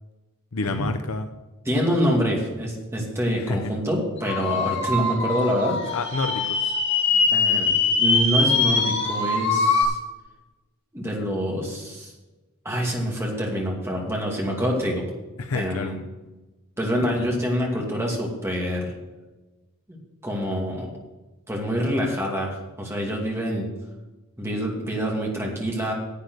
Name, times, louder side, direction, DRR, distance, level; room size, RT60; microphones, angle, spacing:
voice 1, 0.5-1.3 3.4-3.6 5.9-6.8 15.4-15.9, left 3 dB, 75° left, 7 dB, 0.7 m, -29 dB
voice 2, 1.6-6.0 7.3-10.0 10.9-12.1 12.6-15.0 15.5-16.0 16.8-18.9 19.9-20.0 20.2-20.9 21.5-23.7 24.4-25.9, equal, 10° right, -2 dB, 2.5 m, -26 dB
sound 1, 4.2-9.8, left 4 dB, 55° left, 2.4 m, -22 dB
10.5 x 8.4 x 6.4 m, 1.1 s
head